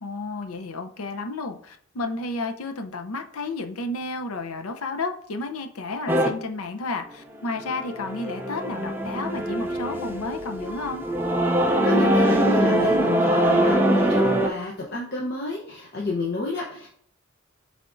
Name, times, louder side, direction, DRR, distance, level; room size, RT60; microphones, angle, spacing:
voice 1, 0.0-11.1, left 3 dB, 85° left, 6 dB, 0.7 m, -32 dB
sound 1, 6.1-6.3 7.4-14.5, right 1 dB, 10° right, 0.4 m, -22 dB
voice 2, 11.8-16.9, left 1 dB, 50° left, -2 dB, 0.8 m, -29 dB
10.5 x 3.6 x 2.5 m, 0.62 s
head